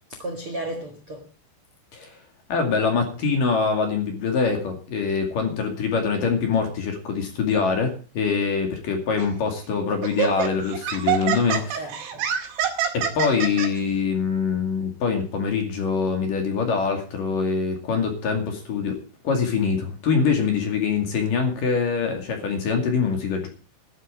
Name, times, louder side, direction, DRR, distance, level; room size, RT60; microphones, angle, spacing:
voice 1, 0.1-1.3 11.5-12.3 13.3-13.5, right 1 dB, 50° right, 1.6 m, -34 dB
voice 2, 2.5-11.6 12.9-19.0 19.2-23.5, left 5 dB, 50° left, 3.6 m, -24 dB
Laughter, 9.2-9.4 10.0-13.7, right 9 dB, 85° right, 4.9 m, -25 dB
12.5 x 7.4 x 9.0 m
omnidirectional pair, 5.6 m